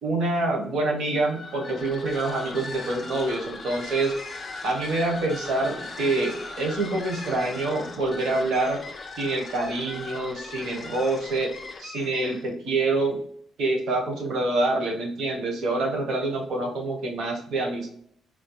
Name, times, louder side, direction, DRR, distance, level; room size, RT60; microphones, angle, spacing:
voice 1, 0.0-4.1 4.6-8.9 9.2-11.5 11.8-13.2 13.6-17.9, right 2 dB, 70° right, 1 dB, 1.3 m, -26 dB
sound 1, 1.1-12.5, left 3 dB, 30° left, 0.7 m, -38 dB
4.1 x 3.1 x 2.3 m, 0.64 s
cardioid pair, 120°, 0 cm